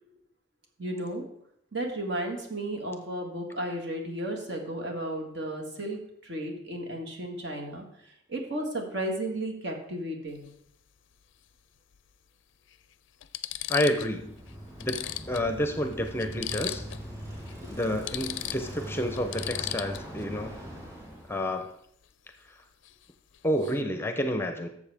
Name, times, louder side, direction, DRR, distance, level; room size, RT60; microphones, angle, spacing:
voice 1, 0.8-1.2 1.7-10.5 17.6-17.7, right 1 dB, 60° right, 2 dB, 1.7 m, -34 dB
sound 1, 10.3-10.5 11.9-12.0 12.7-12.8 13.2-14.2 14.5-14.6 14.8-17.1 17.4-17.5 17.8-20.2 22.8-23.1 23.3-23.8, left 14 dB, 70° left, 0.4 m, -37 dB
voice 2, 13.7-14.4 14.8-16.8 17.7-20.6 21.3-21.7 23.4-24.7, equal, 10° left, 7 dB, 0.6 m, -29 dB
Bicycle, 13.9-21.4, equal, 15° right, 3.5 m, -41 dB
12.0 x 7.0 x 3.5 m, 0.71 s
head